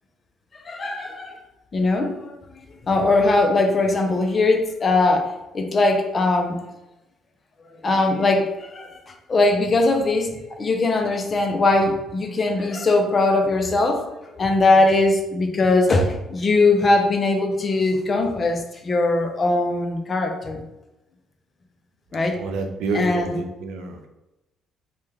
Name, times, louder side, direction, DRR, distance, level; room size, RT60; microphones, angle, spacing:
voice 1, 0.5-1.4 1.7-2.4 2.8-5.3 5.5-6.6 7.8-20.6 22.1-22.4 22.9-23.4, left 2 dB, 25° left, 4 dB, 0.4 m, -20 dB
voice 2, 22.4-24.1, right 3 dB, 85° right, 5 dB, 0.4 m, -28 dB
3.1 x 2.2 x 3.4 m, 0.96 s
cardioid pair, 160°, 0 cm